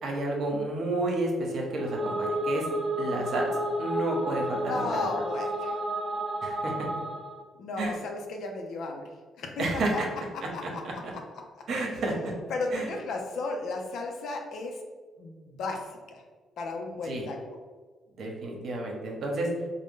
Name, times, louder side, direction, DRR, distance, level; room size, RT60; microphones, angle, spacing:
voice 1, 0.0-2.7 3.0-3.5 3.8-5.0 6.4-6.7 7.8-8.0 9.6-10.1 10.6-10.9 11.7-12.3 12.7-12.9 17.0-17.2 18.2-19.5, right 2 dB, 65° right, 0 dB, 0.9 m, -30 dB
sound 1, 1.6-7.4, right 1 dB, 35° right, 0.5 m, -31 dB
voice 2, 4.7-5.8 7.6-9.0 9.4-10.0 10.3-11.2 12.5-14.8 15.2-15.8 16.1-16.2 16.6-17.4, left 3 dB, 70° left, 3 dB, 0.6 m, -34 dB
3.9 x 2.2 x 3.6 m, 1.4 s
cardioid pair, 90°, 0 cm